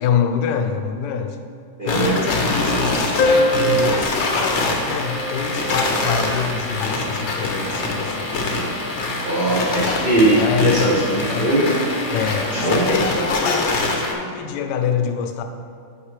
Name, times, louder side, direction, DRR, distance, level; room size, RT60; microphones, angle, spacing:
voice 1, 0.0-1.4 1.8-8.5 10.4-11.5 12.1-15.4, left 7 dB, 70° left, 6 dB, 1.1 m, -25 dB
voice 2, 1.8-2.2 9.2-11.7 12.5-13.0, right 1 dB, 55° right, -5 dB, 0.6 m, -19 dB
sound 1, 1.9-14.1, left 2 dB, 55° left, 0.8 m, -24 dB
sound 2, 3.2-8.2, equal, 85° left, 1.6 m, -25 dB
9.9 x 5.5 x 3.2 m, 2.4 s
omnidirectional pair, 2.2 m